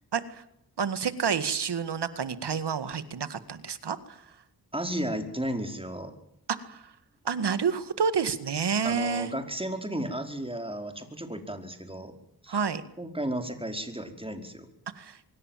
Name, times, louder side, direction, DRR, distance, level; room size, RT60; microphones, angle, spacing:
voice 1, 0.1-0.4 0.8-4.2 6.6-6.9 7.3-9.3 12.5-12.8 15.0-15.2, right 6 dB, 90° right, 12 dB, 2.0 m, -29 dB
voice 2, 4.7-6.1 8.8-12.1 12.4-12.6 13.0-14.7, right 1 dB, 15° right, 6 dB, 5.0 m, -34 dB
25.5 x 22.5 x 7.6 m, 0.74 s
cardioid pair, 55°, 39 cm